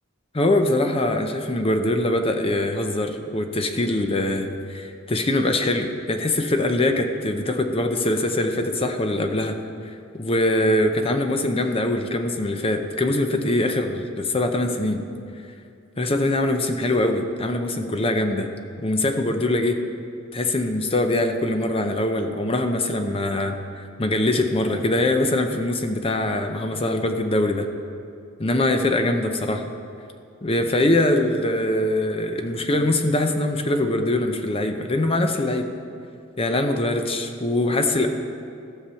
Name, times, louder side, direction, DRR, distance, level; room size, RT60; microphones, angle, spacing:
voice 1, 0.3-9.6 10.1-15.0 16.0-18.5 18.8-19.8 20.3-23.6 24.0-27.7 28.4-29.6 30.4-35.7 36.4-38.1, left 1 dB, 25° left, 6 dB, 0.7 m, -23 dB
14.5 x 6.7 x 5.6 m, 2.4 s
head